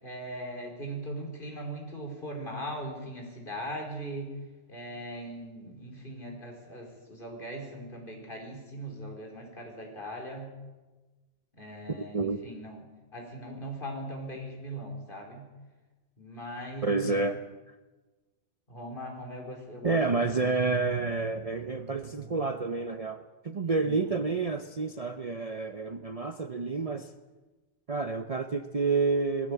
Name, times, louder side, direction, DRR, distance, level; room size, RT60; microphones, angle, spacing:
voice 1, 0.0-4.3 4.7-10.5 11.6-12.8 13.1-15.5 16.2-17.3 18.7-20.0 20.4-20.5 23.8-24.2, right 1 dB, 45° left, 2 dB, 4.6 m, -40 dB
voice 2, 12.0-12.4 16.8-17.4 19.8-27.1 27.9-29.5, right 4 dB, 35° right, 8 dB, 0.8 m, -29 dB
20.0 x 15.5 x 8.5 m, 1.2 s
omnidirectional pair, 1.2 m